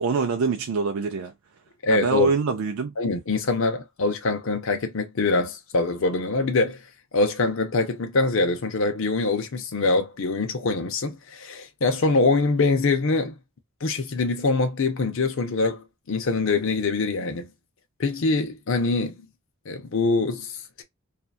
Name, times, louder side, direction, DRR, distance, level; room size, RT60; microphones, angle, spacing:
voice 1, 0.0-1.3 1.9-2.9, right 4 dB, 85° right, 0.4 m, -24 dB
voice 2, 1.8-2.3 3.0-6.8 7.1-13.3 13.8-17.5 18.0-19.2 19.7-20.8, left 3 dB, 65° left, 0.6 m, -24 dB
2.7 x 2.4 x 2.3 m
head